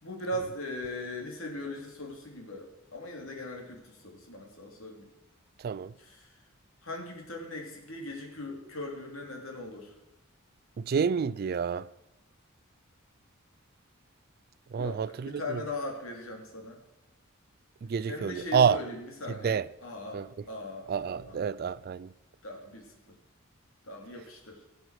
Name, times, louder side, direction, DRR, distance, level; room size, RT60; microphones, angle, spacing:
voice 1, 0.0-5.1 6.0-6.4 6.8-9.9 14.7-16.8 18.1-19.6 19.8-21.4 22.4-22.9 23.8-24.6, left 1 dB, 75° left, 2.6 m, -39 dB
voice 2, 5.6-5.9 10.8-11.9 14.7-15.6 17.8-18.8 19.3-19.7 20.1-20.3 20.9-22.1, right 6 dB, 45° right, 0.3 m, -28 dB
16.5 x 7.8 x 4.7 m
head